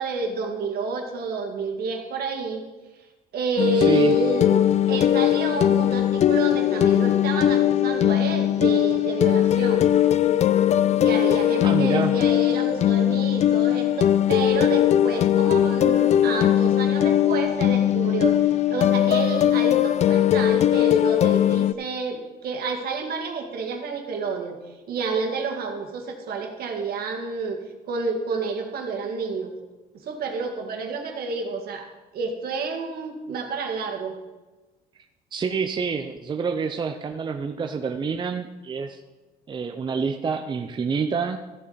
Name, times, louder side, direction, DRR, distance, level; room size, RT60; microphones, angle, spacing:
voice 1, 0.0-2.7 3.3-4.6 4.9-9.9 11.0-24.6 24.9-27.6 27.9-29.5 29.9-34.2, right 4 dB, 65° right, 3 dB, 1.9 m, -29 dB
sound 1, 3.6-21.7, left 11 dB, 40° left, 0.4 m, -20 dB
voice 2, 3.7-4.2 11.6-12.1 35.3-39.0 39.5-41.4, right 5 dB, 25° right, 6 dB, 0.6 m, -27 dB
14.5 x 7.3 x 4.0 m, 1.2 s
cardioid pair, 110°, 17 cm